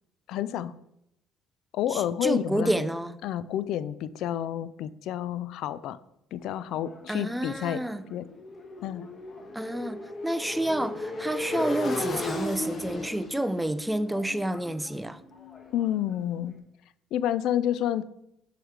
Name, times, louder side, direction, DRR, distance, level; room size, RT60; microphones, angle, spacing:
voice 1, 0.3-0.7 1.7-2.8 3.2-6.0 6.3-7.8 8.1-8.2 8.8-9.1 15.7-16.5 17.1-18.0, left 11 dB, 70° left, 0.4 m, -29 dB
voice 2, 1.9-3.2 7.1-8.0 9.5-15.2, right 1 dB, 5° right, 0.5 m, -29 dB
Motorcycle, 6.5-16.3, left 2 dB, 40° left, 1.2 m, -36 dB
6.4 x 4.8 x 4.7 m
supercardioid pair, 75°, 0 cm